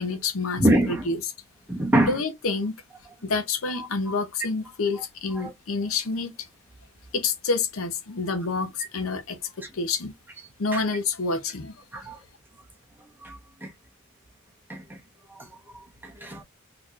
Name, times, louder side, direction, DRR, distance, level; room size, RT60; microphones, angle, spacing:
voice 1, 0.0-1.3 2.0-2.7 3.2-6.5 7.1-9.4 9.7-10.1 10.6-11.7, left 4 dB, 75° left, 0.7 m, -28 dB
voice 2, 0.6-1.1 1.7-2.1 3.7-4.1 5.3-5.5 10.7-10.8 11.9-12.2 13.2-13.7 14.7-15.0 15.3-16.4, right 1 dB, 10° right, 0.9 m, -26 dB
3.6 x 2.9 x 2.4 m
head